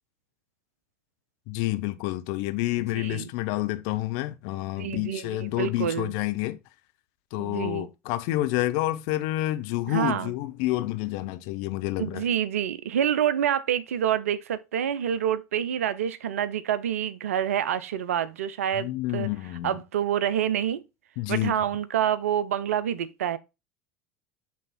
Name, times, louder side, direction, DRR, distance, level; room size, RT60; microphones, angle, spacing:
voice 1, 1.5-6.6 7.3-12.2 18.8-19.7 21.2-21.5, left 16 dB, 60° left, 0.7 m, -29 dB
voice 2, 2.9-3.3 4.8-6.1 7.4-7.9 9.9-10.3 12.0-19.3 19.6-20.8 21.3-23.4, right 10 dB, 75° right, 0.5 m, -27 dB
8.2 x 3.5 x 3.9 m
figure-of-eight pair, 70°, 8 cm